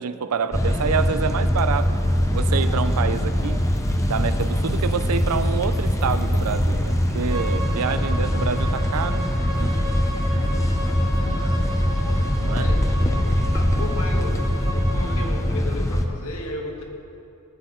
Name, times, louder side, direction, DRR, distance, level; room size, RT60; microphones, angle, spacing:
voice 1, 0.0-2.0 2.3-3.6 4.1-9.3 9.6-9.8 10.3-10.7 11.3-11.4 12.4-12.7, right 6 dB, 85° right, 12 dB, 0.5 m, -27 dB
sound 1, 0.5-16.1, equal, 15° left, 0.6 m, -22 dB
Bowed string instrument, 7.3-15.3, right 1 dB, 15° right, 1.4 m, -35 dB
voice 2, 11.0-11.7 12.6-16.8, left 2 dB, 70° left, 0 dB, 1.7 m, -35 dB
18.0 x 7.7 x 3.8 m, 2.8 s
head